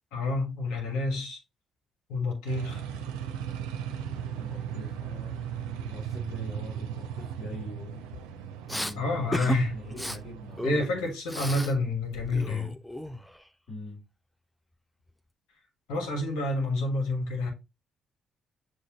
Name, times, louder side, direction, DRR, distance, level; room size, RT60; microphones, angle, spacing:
voice 1, 0.1-1.4 2.1-2.9 9.0-9.7 10.6-12.7 15.9-17.5, left 2 dB, 80° left, 1.5 m, -28 dB
sound 1, 2.5-10.8, right 9 dB, 90° right, 0.5 m, -37 dB
voice 2, 4.4-5.3 5.8-8.0 8.7-10.7 10.9-11.6 13.1-13.2 13.7-14.0, left 3 dB, 55° left, 2.7 m, -43 dB
Respiratory sounds, 8.7-8.9 9.3-9.6 9.9-10.2 10.6-11.7 12.0-13.4, equal, 5° left, 0.4 m, -34 dB
6.5 x 2.6 x 2.9 m
supercardioid pair, 55°, 0 cm